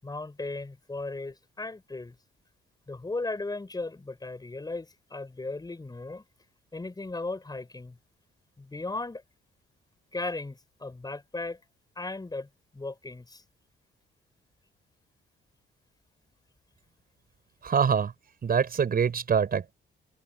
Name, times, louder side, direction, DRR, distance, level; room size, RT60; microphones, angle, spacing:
voice 1, 0.0-2.2 2.9-6.2 6.7-8.0 8.6-9.2 10.1-11.6 12.0-13.4, left 2 dB, 20° left, 7.0 m, -36 dB
voice 2, 17.6-18.1 18.4-19.7, right 6 dB, 50° right, 5.9 m, -24 dB
cardioid pair, 90°, 20 cm